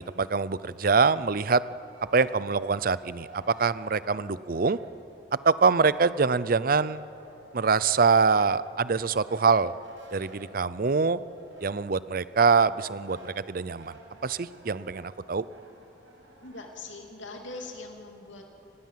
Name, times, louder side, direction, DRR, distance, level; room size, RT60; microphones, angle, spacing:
voice 1, 0.0-1.6 2.1-4.8 5.4-7.0 7.5-9.7 10.1-11.2 11.6-13.9 14.2-15.4, right 5 dB, 50° right, 17 dB, 0.6 m, -24 dB
Brass instrument, 0.9-5.3 5.6-17.7, right 1 dB, 80° right, 5.6 m, -53 dB
voice 2, 16.4-18.4, left 3 dB, 80° left, 2 dB, 3.0 m, -41 dB
25.0 x 20.0 x 7.6 m, 2.8 s
head